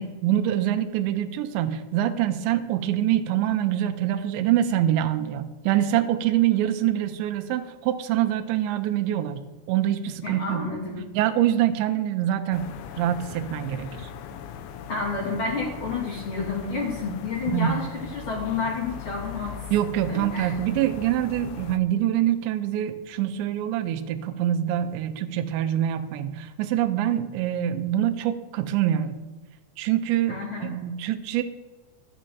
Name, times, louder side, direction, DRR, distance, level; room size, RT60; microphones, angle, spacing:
voice 1, 0.0-9.4 9.7-10.6 11.1-13.9 17.5-17.8 19.7-29.1 29.8-31.4, right 11 dB, 85° right, 8 dB, 3.0 m, -25 dB
voice 2, 10.2-11.1 14.9-19.6 20.1-20.5 30.3-30.7, left 4 dB, 60° left, -2 dB, 1.3 m, -30 dB
sound 1, 12.5-21.8, left 8 dB, 90° left, 3.2 m, -39 dB
13.0 x 7.6 x 6.8 m, 1.2 s
omnidirectional pair, 5.3 m